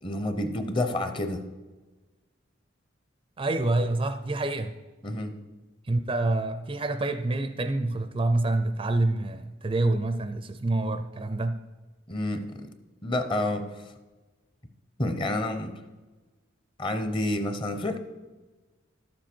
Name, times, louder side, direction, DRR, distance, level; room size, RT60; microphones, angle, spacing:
voice 1, 0.0-1.5 5.0-5.4 12.1-12.7 13.0-13.8 15.0-15.8 16.8-18.0, left 1 dB, 25° left, 8 dB, 0.7 m, -29 dB
voice 2, 3.4-4.8 5.9-11.6, right 2 dB, 25° right, 9 dB, 0.4 m, -27 dB
12.0 x 7.5 x 4.4 m, 1.2 s
head